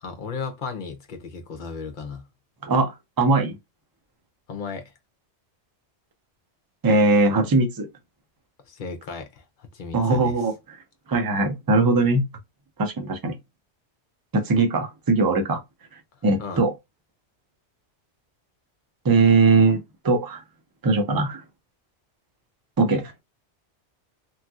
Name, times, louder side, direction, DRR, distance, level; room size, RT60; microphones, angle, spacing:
voice 1, 0.0-2.3 4.5-4.9 8.6-10.5 16.4-16.6, left 5 dB, 50° left, 0.8 m, -35 dB
voice 2, 2.6-3.6 6.8-7.9 9.9-10.5 11.1-12.2 12.8-13.4 14.3-15.6 16.2-16.7 19.0-20.4 20.8-21.4 22.8-23.2, right 3 dB, 30° right, 0.4 m, -20 dB
3.1 x 2.7 x 2.3 m
omnidirectional pair, 1.2 m